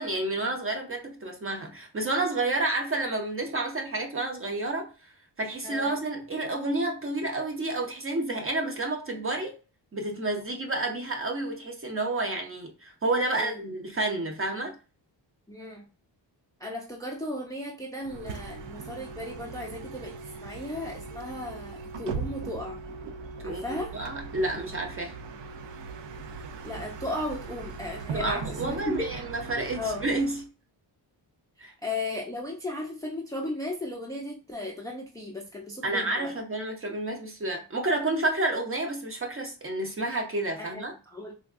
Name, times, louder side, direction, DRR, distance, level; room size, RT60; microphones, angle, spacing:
voice 1, 0.0-5.1 5.4-9.6 9.9-14.8 23.4-25.1 28.1-30.5 31.6-31.7 35.8-40.9, right 2 dB, 30° right, 0.7 m, -30 dB
voice 2, 15.5-15.9 16.6-20.2 20.4-22.8 23.4-23.9 26.6-29.1 29.8-30.0 31.6-36.3 40.6-41.3, left 1 dB, 10° left, 0.5 m, -35 dB
Bus, 18.0-30.5, right 4 dB, 75° right, 0.5 m, -39 dB
3.4 x 2.2 x 2.4 m
wide cardioid pair, 115°, 44 cm